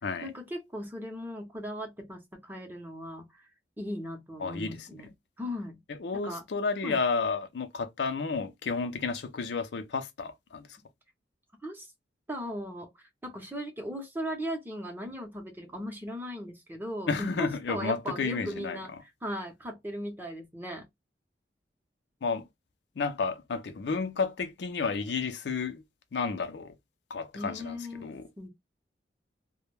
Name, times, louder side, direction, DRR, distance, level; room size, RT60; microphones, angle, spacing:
voice 1, 0.2-3.3 3.8-5.1 5.4-5.8 6.1-6.4 6.8-7.0 11.6-11.9 12.3-20.9 27.3-28.5, equal, 10° right, 0.6 m, -38 dB
voice 2, 4.4-4.9 5.9-10.7 17.1-18.8 22.2-22.4 23.0-25.8 26.1-26.7 27.1-28.3, left 4 dB, 70° left, 0.5 m, -31 dB
2.2 x 2.1 x 3.0 m
head